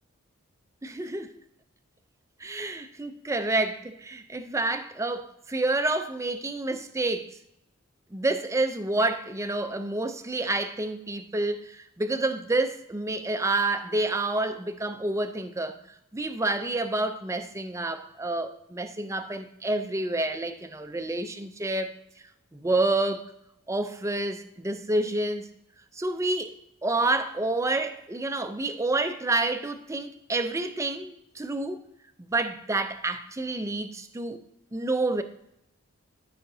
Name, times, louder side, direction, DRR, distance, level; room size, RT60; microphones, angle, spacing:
voice 1, 0.8-1.3 2.4-7.4 8.1-15.8 16.1-21.9 22.5-23.2 23.7-25.5 25.9-26.6 26.8-31.8 32.2-34.4 34.7-35.2, right 2 dB, 15° right, 0.5 m, -28 dB
12.5 x 5.7 x 2.7 m
head